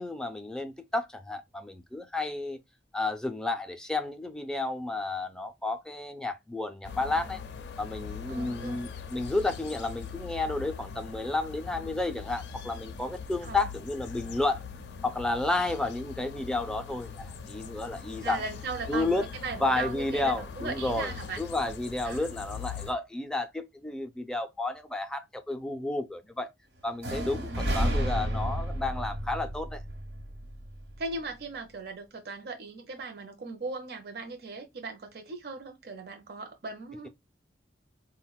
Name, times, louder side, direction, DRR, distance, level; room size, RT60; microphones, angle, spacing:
voice 1, 0.0-2.6 2.9-7.4 7.8-14.6 15.0-18.4 18.9-19.3 19.6-21.1 21.4-26.5 26.8-29.8, left 2 dB, 5° left, 0.3 m, -31 dB
sound 1, 6.8-22.9, left 6 dB, 75° left, 0.4 m, -42 dB
voice 2, 8.3-8.9 13.4-13.6 18.2-21.4 22.0-22.3 27.5-27.9 31.0-37.1, right 4 dB, 60° right, 0.5 m, -38 dB
sound 2, 27.0-30.9, equal, 90° right, 0.9 m, -31 dB
4.0 x 2.1 x 2.2 m
head